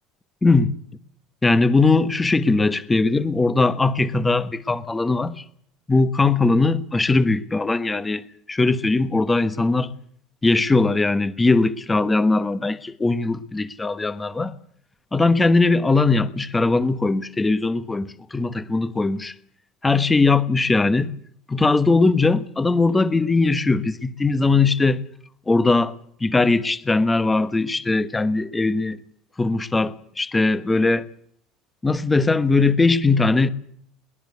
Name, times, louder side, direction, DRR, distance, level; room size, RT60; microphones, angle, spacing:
voice 1, 0.4-0.7 1.4-5.4 5.9-9.9 10.4-14.5 15.1-19.3 19.8-21.1 21.5-25.0 25.5-29.0 29.4-31.1 31.8-33.5, left 3 dB, 10° left, 1.2 m, -20 dB
22.5 x 20.5 x 8.3 m
cardioid pair, 150°, 0 cm